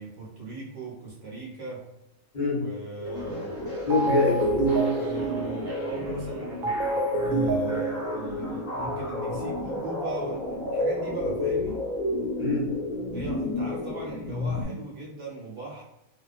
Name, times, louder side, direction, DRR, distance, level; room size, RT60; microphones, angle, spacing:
voice 1, 0.0-1.9 2.6-3.6 4.9-11.8 13.1-15.8, right 3 dB, 60° right, -5 dB, 1.1 m, -39 dB
voice 2, 2.3-2.7 3.8-4.9 12.4-12.8, left 3 dB, 45° left, -8 dB, 0.7 m, -25 dB
sound 1, 2.5-11.0 11.2-14.3, left 2 dB, 40° right, 0.9 m, -39 dB
sound 2, 3.0-14.6, left 2 dB, 15° left, 1.2 m, -32 dB
sound 3, 3.2-3.5 3.9-9.0, right 3 dB, 85° right, 1.0 m, -29 dB
2.4 x 2.2 x 2.4 m, 0.86 s
omnidirectional pair, 1.4 m